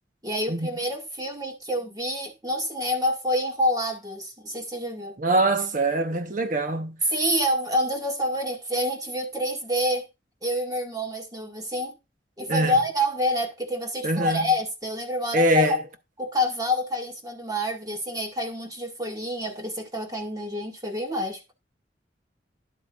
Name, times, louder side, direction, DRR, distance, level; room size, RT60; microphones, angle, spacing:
voice 1, 0.2-5.2 7.1-10.0 10.4-12.0 12.4-15.8 16.2-21.4, left 1 dB, 20° right, 2.0 m, -27 dB
voice 2, 5.2-7.0 12.5-12.7 14.0-14.4 15.3-15.8, right 1 dB, 45° right, 1.1 m, -23 dB
11.0 x 8.0 x 2.5 m
head